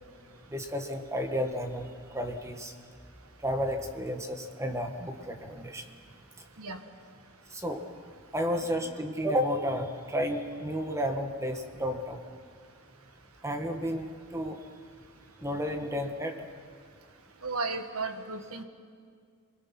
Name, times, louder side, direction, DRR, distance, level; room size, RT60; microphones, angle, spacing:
voice 1, 0.5-2.7 3.4-5.8 7.5-7.8 8.3-12.2 13.4-14.6 15.4-16.4, equal, 15° right, 5 dB, 1.6 m, -32 dB
voice 2, 17.4-18.6, right 3 dB, 70° right, 7 dB, 1.7 m, -34 dB
27.0 x 21.5 x 6.0 m, 2.1 s
head